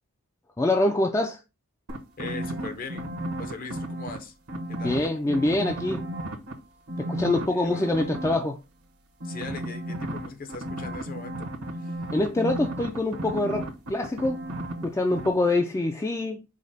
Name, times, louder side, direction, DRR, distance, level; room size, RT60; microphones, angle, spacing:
voice 1, 0.6-1.4 4.8-6.0 7.0-8.6 12.1-14.4 14.8-16.4, left 2 dB, 15° left, 0.3 m, -25 dB
sound 1, 1.9-4.2 4.5-6.5 6.9-8.3 9.2-14.8 15.1-15.3, right 1 dB, 85° right, 1.1 m, -33 dB
voice 2, 2.2-4.3 4.7-5.0 7.5-7.9 9.2-12.0, left 3 dB, 40° left, 0.7 m, -40 dB
5.0 x 2.1 x 4.0 m
head